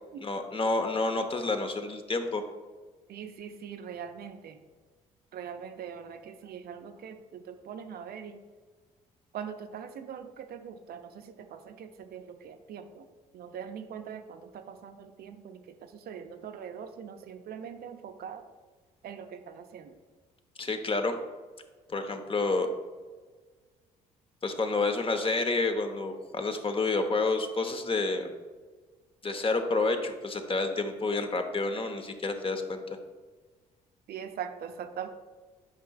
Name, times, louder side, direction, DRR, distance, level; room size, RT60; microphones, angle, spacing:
voice 1, 0.2-2.4 20.6-21.1 21.9-22.7 24.4-28.3 29.2-32.8, left 3 dB, 30° left, 6 dB, 1.0 m, -29 dB
voice 2, 3.1-4.6 5.3-8.4 9.3-13.1 13.3-18.4 19.0-20.0 34.1-35.1, right 7 dB, 60° right, 7 dB, 0.6 m, -42 dB
9.5 x 5.5 x 2.4 m, 1.4 s
hypercardioid pair, 50°, 18 cm